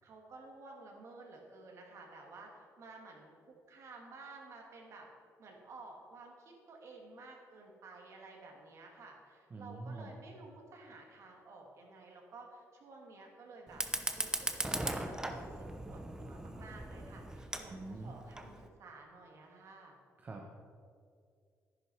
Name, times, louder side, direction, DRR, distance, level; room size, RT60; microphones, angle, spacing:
voice 1, 0.0-5.1 5.4-13.8 14.1-19.9, right 3 dB, 60° right, 0 dB, 2.5 m, -53 dB
voice 2, 9.5-10.1 17.7-18.1 20.2-20.5, right 3 dB, 30° right, 0 dB, 1.1 m, -45 dB
Fire, 13.7-18.7, right 1 dB, 10° right, 0.9 m, -39 dB
11.0 x 10.5 x 4.7 m, 2.2 s
cardioid pair, 110°, 6 cm